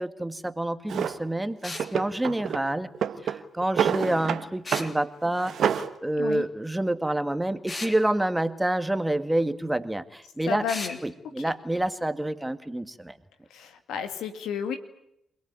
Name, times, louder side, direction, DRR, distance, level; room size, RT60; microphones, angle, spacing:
voice 1, 0.0-2.9 3.2-10.7 11.0-13.1, right 1 dB, 10° right, 10 dB, 2.0 m, -28 dB
Drawer open or close, 0.9-1.2 1.8-2.6 2.9-4.4 4.7-4.9 5.2-5.9, right 8 dB, 65° right, 1.3 m, -27 dB
sound 1, 1.6-1.9 4.6-4.9 7.7-8.0 10.7-11.0, left 3 dB, 40° left, 3.3 m, -35 dB
voice 2, 10.5-11.0 11.5-11.6 13.5-14.8, left 7 dB, 75° left, 8 dB, 2.2 m, -32 dB
27.5 x 18.0 x 9.6 m, 0.80 s
hypercardioid pair, 40°, 0 cm